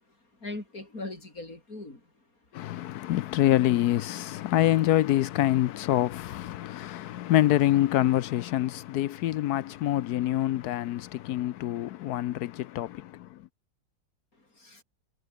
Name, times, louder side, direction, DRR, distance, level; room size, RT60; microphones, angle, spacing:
voice 1, 0.0-2.3 14.3-14.8, left 2 dB, 50° left, 6.6 m, -41 dB
voice 2, 2.5-13.4, left 14 dB, 70° left, 1.0 m, -26 dB
omnidirectional pair, 1.9 m